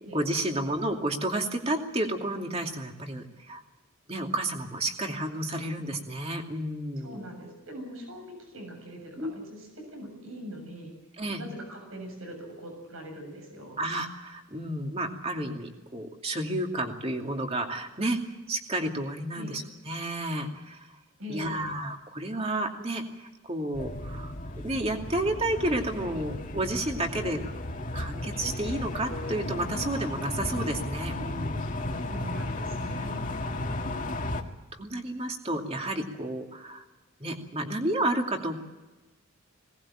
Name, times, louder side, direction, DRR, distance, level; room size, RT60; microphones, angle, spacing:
voice 1, 0.1-3.6 4.1-7.2 9.2-9.3 11.2-11.4 13.8-18.2 18.5-20.9 21.3-27.4 27.9-31.7 33.6-34.1 34.7-36.8 37.2-38.6, right 1 dB, 30° right, 3 dB, 2.6 m, -31 dB
voice 2, 7.0-10.9 11.4-13.8 19.3-19.5 21.2-21.7 32.1-33.3, equal, 80° right, 3 dB, 7.2 m, -42 dB
sound 1, 23.7-34.4, left 1 dB, 40° left, 2.0 m, -34 dB
21.0 x 19.0 x 8.8 m, 1.1 s
head